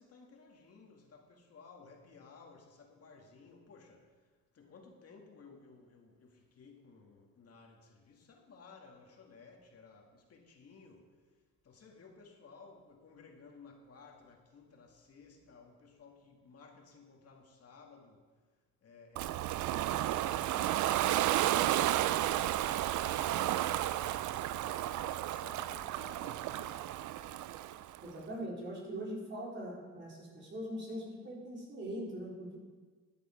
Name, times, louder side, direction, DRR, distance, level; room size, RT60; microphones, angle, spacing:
voice 1, 0.0-4.1 4.5-11.1 11.6-18.3 18.8-20.7 21.2-26.9, left 4 dB, 55° left, 0 dB, 2.3 m, -57 dB
Ocean, 19.2-28.0, right 13 dB, 75° right, 0.5 m, -32 dB
voice 2, 28.0-32.6, equal, 40° right, -4 dB, 4.2 m, -41 dB
13.5 x 9.9 x 4.6 m, 1.4 s
cardioid pair, 90°, 30 cm